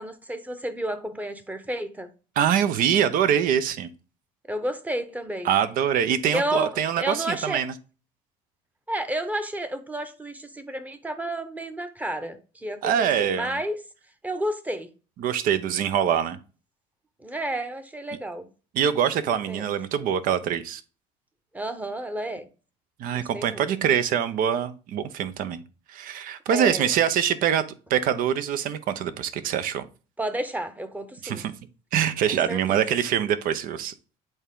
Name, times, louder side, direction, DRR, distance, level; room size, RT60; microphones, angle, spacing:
voice 1, 0.0-2.1 4.5-5.5 6.3-7.6 8.9-13.8 14.2-14.9 17.2-18.5 19.5-19.7 21.5-22.5 23.1-23.6 26.5-26.9 30.2-31.5 32.3-32.8, right 1 dB, 10° right, 0.9 m, -31 dB
voice 2, 2.4-3.9 5.4-7.7 12.8-13.6 15.2-16.4 18.7-20.8 23.0-25.6 25.9-27.6 27.9-29.9 31.2-31.5 31.9-33.9, right 9 dB, 60° right, 0.7 m, -24 dB
8.1 x 3.5 x 3.6 m
supercardioid pair, 100°, 16 cm